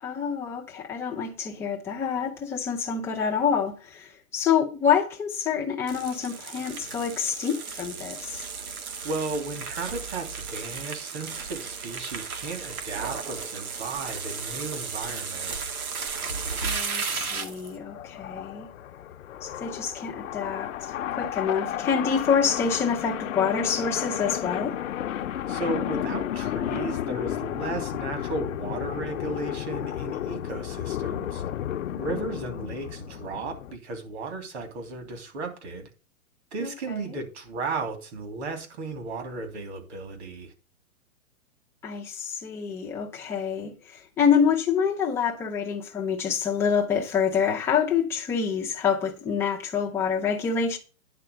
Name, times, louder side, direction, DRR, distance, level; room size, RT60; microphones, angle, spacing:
voice 1, 0.0-8.5 16.6-18.7 19.4-24.8 31.9-32.4 36.6-37.2 41.8-50.8, left 7 dB, 5° left, 0.6 m, -27 dB
sound 1, 5.9-17.7, right 5 dB, 80° right, 2.0 m, -34 dB
voice 2, 9.0-15.5 25.5-31.5 32.0-35.9 36.5-40.5, right 3 dB, 50° right, 3.1 m, -35 dB
sound 2, 16.2-33.8, left 11 dB, 60° left, 0.8 m, -33 dB
9.9 x 4.3 x 7.0 m
hypercardioid pair, 155°, 42 cm